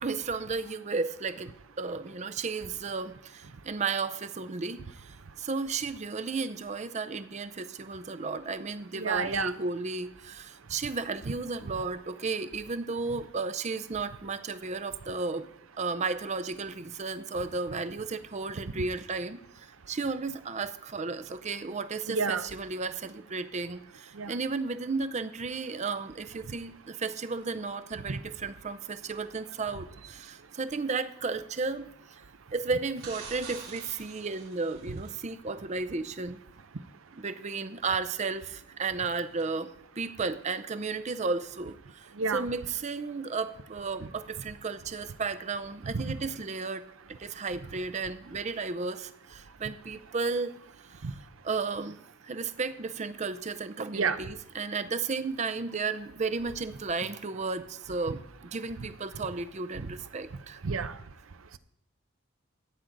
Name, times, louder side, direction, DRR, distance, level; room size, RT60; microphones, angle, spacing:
voice 1, 0.0-15.5 15.8-32.2 32.5-36.4 37.1-46.8 47.2-50.5 50.8-51.2 51.4-52.0 52.2-60.6, right 4 dB, 35° right, 0.5 m, -34 dB
voice 2, 8.9-9.5 22.1-22.4 24.2-24.3 42.2-42.5 45.8-46.2 51.0-51.1 53.9-54.2 60.6-60.9, right 5 dB, 70° right, 0.7 m, -29 dB
sound 1, 33.0-35.2 39.4-39.5, right 5 dB, 90° right, 3.6 m, -45 dB
14.5 x 9.2 x 3.9 m
head